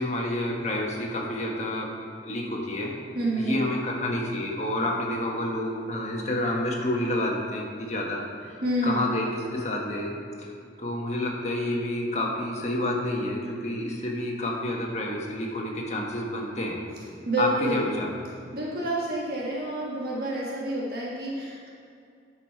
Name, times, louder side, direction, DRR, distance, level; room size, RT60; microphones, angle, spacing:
voice 1, 0.0-1.9 2.2-2.9 3.4-8.5 8.8-10.5 10.8-16.8 17.4-18.1, left 1 dB, 40° left, -1 dB, 1.4 m, -29 dB
voice 2, 3.1-3.6 8.6-9.1 17.2-17.9 18.5-21.7, right 1 dB, 55° right, -5 dB, 1.4 m, -28 dB
9.9 x 6.2 x 4.6 m, 2.4 s
head